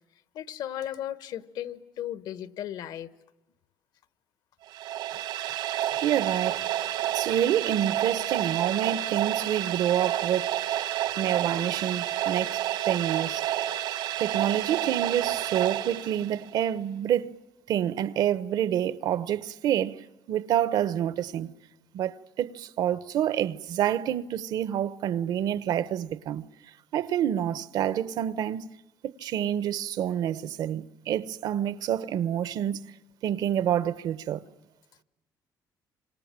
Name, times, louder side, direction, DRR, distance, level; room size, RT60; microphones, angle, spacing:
voice 1, 0.3-3.1, left 11 dB, 70° left, 1.2 m, -36 dB
sound 1, 4.7-16.6, right 13 dB, 85° right, 2.4 m, -30 dB
voice 2, 6.0-6.7 7.0-10.5 11.2-13.5 14.2-17.4 17.7-21.5 21.9-26.5 26.9-28.7 29.0-32.9 33.2-34.4, right 10 dB, 65° right, 0.9 m, -28 dB
29.0 x 26.0 x 7.5 m
cardioid pair, 165°, 8 cm